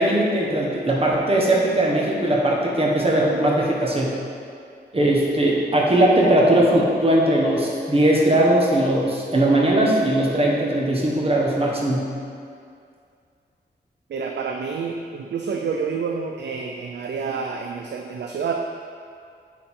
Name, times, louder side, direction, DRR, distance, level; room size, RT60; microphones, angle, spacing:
voice 1, 0.0-4.1 4.9-12.1, right 1 dB, 35° right, -4 dB, 1.5 m, -19 dB
voice 2, 14.1-18.5, right 5 dB, 75° right, 2 dB, 0.5 m, -28 dB
9.2 x 4.6 x 3.8 m, 2.3 s
wide cardioid pair, 90°, 18 cm